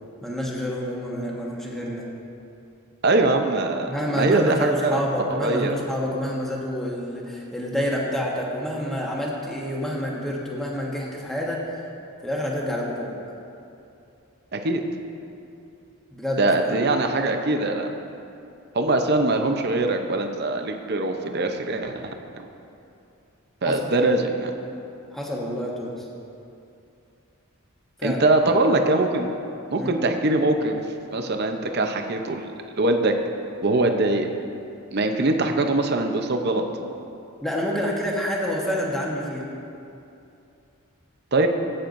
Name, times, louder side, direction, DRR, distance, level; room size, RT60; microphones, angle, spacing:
voice 1, 0.2-2.1 3.9-11.6 12.2-13.2 16.1-16.8 23.6-23.8 25.1-26.0 28.0-28.2 29.8-29.9 37.4-39.4, equal, ahead, -4 dB, 1.2 m, -28 dB
voice 2, 3.0-5.0 5.3-5.7 14.5-14.8 16.4-17.9 18.7-22.2 23.6-24.5 28.0-29.3 29.7-30.8 31.1-32.4 32.8-33.1 33.6-34.3 34.9-36.6 41.3-41.5, right 2 dB, 50° right, 5 dB, 0.7 m, -22 dB
18.5 x 8.9 x 2.6 m, 2.7 s
head